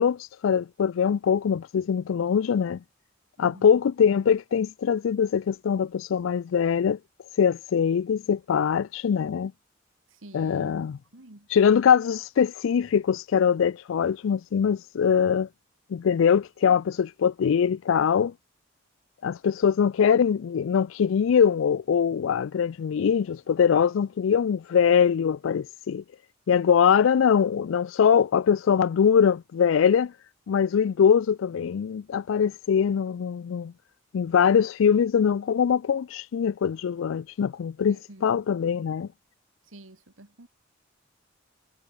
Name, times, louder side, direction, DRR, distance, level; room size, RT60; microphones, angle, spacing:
voice 1, 0.0-2.8 3.4-7.0 7.4-9.5 10.3-11.0 11.5-15.5 15.9-18.3 19.2-26.0 26.5-30.1 30.5-33.7 34.1-39.1, left 7 dB, 75° left, 0.4 m, -22 dB
voice 2, 3.4-3.8 10.1-10.8 11.1-11.5 34.8-35.0 37.9-38.3 39.6-40.5, right 1 dB, 85° right, 2.3 m, -48 dB
head